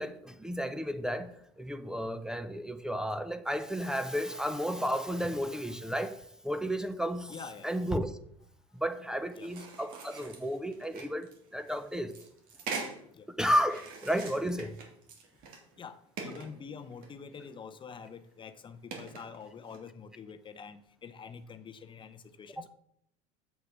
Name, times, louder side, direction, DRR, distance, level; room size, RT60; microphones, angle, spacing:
voice 1, 0.0-7.4 7.6-8.1 8.7-12.1 13.4-14.8 22.6-22.7, equal, 5° right, 11 dB, 0.8 m, -33 dB
voice 2, 7.3-7.7 9.4-9.5 13.1-13.3 15.8-22.7, left 6 dB, 30° left, 10 dB, 0.7 m, -46 dB
sound 1, 9.3-13.0 13.6-15.8 16.2-17.5 18.0-18.1 18.9-19.8, right 4 dB, 60° right, 2.8 m, -44 dB
7.3 x 6.6 x 6.6 m, 0.71 s
supercardioid pair, 95°, 16 cm